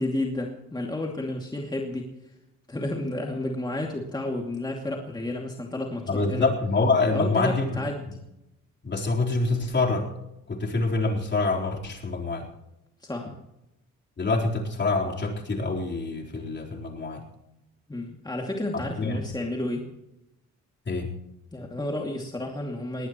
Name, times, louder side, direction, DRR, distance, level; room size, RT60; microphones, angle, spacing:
voice 1, 0.0-2.1 2.7-6.5 7.1-8.1 13.0-13.4 17.9-19.9 21.5-23.1, left 1 dB, 15° left, 0 dB, 2.5 m, -31 dB
voice 2, 6.1-7.8 8.8-10.1 10.5-12.5 14.2-17.2 19.0-19.2 20.9-21.2, left 3 dB, 35° left, 0 dB, 4.1 m, -26 dB
19.5 x 18.5 x 3.1 m, 0.88 s
cardioid pair, 90°, 30 cm